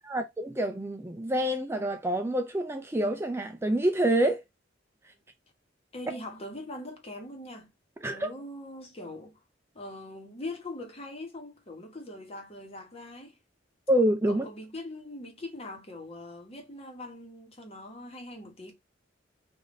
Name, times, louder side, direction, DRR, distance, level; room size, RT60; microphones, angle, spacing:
voice 1, 0.0-4.4 8.0-8.3 13.9-14.5, right 1 dB, 15° right, 0.4 m, -27 dB
voice 2, 5.9-7.7 8.1-9.3 9.7-13.4 14.3-18.7, left 1 dB, 30° left, 1.2 m, -42 dB
3.5 x 2.6 x 3.7 m
head